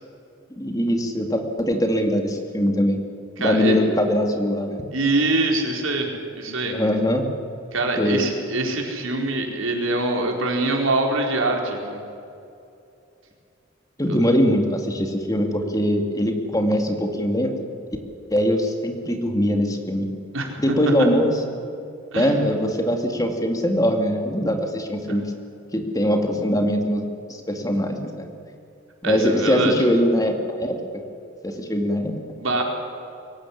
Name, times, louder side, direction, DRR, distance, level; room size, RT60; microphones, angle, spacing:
voice 1, 0.6-3.0 3.4-4.8 6.7-7.3 8.0-8.2 14.0-17.5 18.3-20.1 20.6-21.3 22.1-25.2 25.7-27.0 27.3-28.3 29.0-31.0 31.4-32.1, equal, 15° left, 4 dB, 2.3 m, -22 dB
voice 2, 3.4-3.8 4.9-6.1 6.3-6.7 7.7-12.0 20.3-20.6 22.1-22.4 29.0-29.7 32.3-32.6, right 2 dB, 75° right, 1 dB, 4.4 m, -24 dB
23.5 x 17.5 x 10.0 m, 2.7 s
head